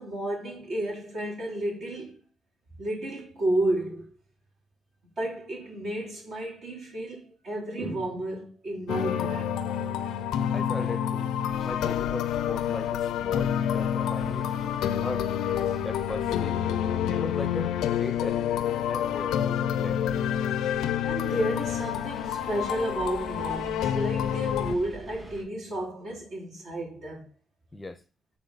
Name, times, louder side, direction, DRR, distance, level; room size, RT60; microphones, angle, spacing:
voice 1, 0.0-2.2 2.8-4.1 5.2-9.6 14.2-14.3 15.0-15.1 21.0-27.3, right 1 dB, 60° right, 3.1 m, -32 dB
sound 1, 8.9-24.7, left 9 dB, 85° left, 0.4 m, -28 dB
voice 2, 10.5-11.3 11.6-14.5 15.0-15.3 15.8-16.6 17.1-19.4 19.7-20.2 27.7-28.0, left 2 dB, 15° left, 0.6 m, -38 dB
sound 2, 11.5-25.4, right 1 dB, 15° right, 2.1 m, -46 dB
6.7 x 3.9 x 4.0 m
cardioid pair, 90°, 0 cm